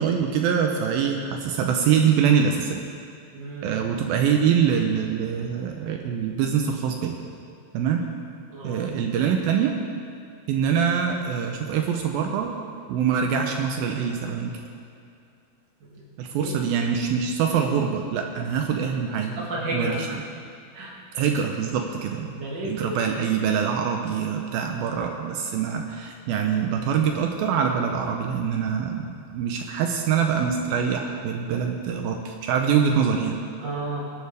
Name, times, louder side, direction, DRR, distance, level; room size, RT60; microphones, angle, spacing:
voice 1, 0.0-2.8 3.6-7.1 7.7-8.0 8.6-9.7 10.5-12.5 12.9-14.6 16.2-19.4 19.7-20.1 21.1-22.3 22.6-33.4, right 7 dB, 80° right, 3 dB, 2.6 m, -24 dB
voice 2, 3.3-3.7 8.5-8.8 15.8-16.1 16.3-16.5 19.4-20.2 20.7-20.9 22.1-23.1 33.6-34.0, right 1 dB, 35° right, -5 dB, 2.5 m, -32 dB
22.0 x 11.5 x 3.5 m, 2.5 s
omnidirectional pair, 4.3 m